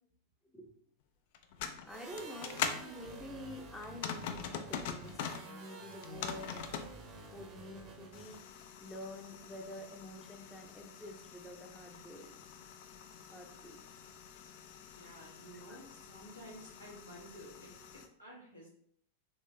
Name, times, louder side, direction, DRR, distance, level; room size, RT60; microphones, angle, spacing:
sound 1, 1.3-2.8 3.8-5.5 5.9-6.9 8.1-18.1, left 7 dB, 50° left, 0.3 m, -44 dB
voice 1, 1.8-6.7 7.3-12.3 13.3-13.8 15.3-15.8, left 1 dB, 5° left, 2 dB, 0.6 m, -48 dB
sound 2, 1.9-8.4, right 2 dB, 35° right, 0.7 m, -50 dB
voice 2, 14.9-18.7, equal, 90° left, -6 dB, 1.4 m, -52 dB
3.6 x 3.2 x 2.6 m, 0.66 s
figure-of-eight pair, 90°, 0 cm